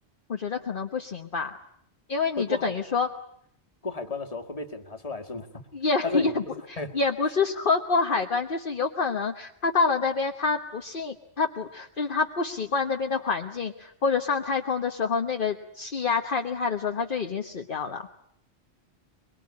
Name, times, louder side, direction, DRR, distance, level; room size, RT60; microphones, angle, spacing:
voice 1, 0.3-1.6 2.1-3.1 5.7-6.4 6.9-18.1, left 4 dB, 50° left, 4 dB, 1.3 m, -27 dB
voice 2, 2.4-2.8 3.8-5.5 6.0-6.9, left 3 dB, 30° left, 4 dB, 2.0 m, -32 dB
23.5 x 22.5 x 9.7 m, 0.71 s
omnidirectional pair, 1.1 m